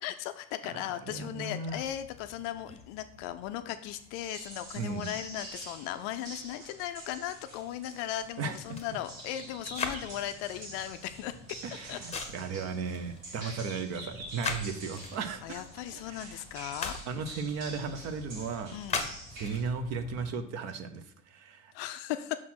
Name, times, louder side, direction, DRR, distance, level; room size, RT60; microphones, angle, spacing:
voice 1, 0.0-11.6 11.9-12.0 13.4-13.5 15.4-17.0 18.7-19.1 21.7-22.4, left 12 dB, 40° left, 10 dB, 0.5 m, -37 dB
voice 2, 0.8-1.8 4.7-5.1 8.4-8.6 11.6-16.4 17.0-18.8 19.3-21.7, right 5 dB, 40° right, 9 dB, 0.9 m, -36 dB
sound 1, 1.6-20.3, left 4 dB, 15° left, 1.0 m, -43 dB
sound 2, 4.2-19.6, right 2 dB, 70° right, 2.3 m, -47 dB
6.2 x 4.2 x 5.8 m, 0.66 s
figure-of-eight pair, 85°, 40 cm